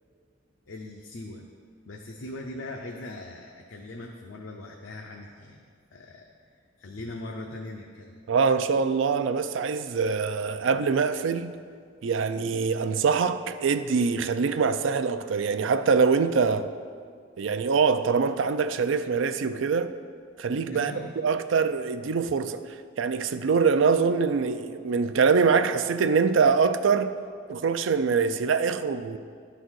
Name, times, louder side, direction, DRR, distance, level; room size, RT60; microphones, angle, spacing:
voice 1, 0.7-1.4 1.9-6.3 6.8-8.2 20.7-21.1, left 2 dB, 80° left, 0.7 m, -40 dB
voice 2, 8.3-11.6 12.0-16.7 17.4-19.9 20.4-20.9 21.2-22.6 23.0-27.1 27.5-29.2, right 5 dB, 75° right, 0.4 m, -24 dB
11.5 x 3.9 x 6.2 m
head